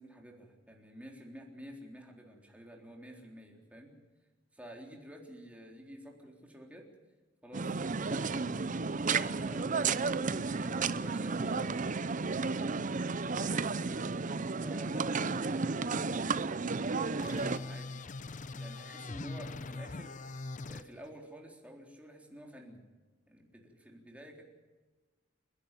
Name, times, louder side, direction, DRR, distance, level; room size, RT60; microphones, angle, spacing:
voice 1, 0.0-3.9 4.5-6.9 7.4-8.6 9.0-11.7 12.3-12.7 13.4-13.9 14.6-20.2 20.7-22.8 23.3-24.4, equal, 5° right, 1 dB, 3.7 m, -50 dB
sound 1, 7.5-17.6, right 4 dB, 40° right, 0.7 m, -32 dB
sound 2, 17.2-20.8, left 3 dB, 40° left, 0.7 m, -42 dB
30.0 x 11.0 x 9.1 m, 1.3 s
head